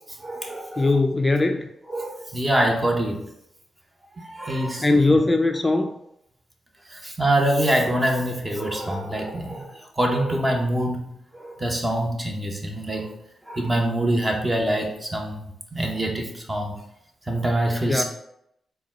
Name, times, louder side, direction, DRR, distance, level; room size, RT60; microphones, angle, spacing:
voice 1, 0.2-0.9 1.9-3.2 4.2-5.2 6.9-13.1 13.5-16.7 17.3-18.0, right 1 dB, 25° right, 1 dB, 1.0 m, -25 dB
voice 2, 0.8-1.7 4.8-5.9 17.9-18.0, left 2 dB, 25° left, 5 dB, 0.3 m, -20 dB
4.0 x 2.3 x 3.6 m, 0.76 s
supercardioid pair, 45°, 0 cm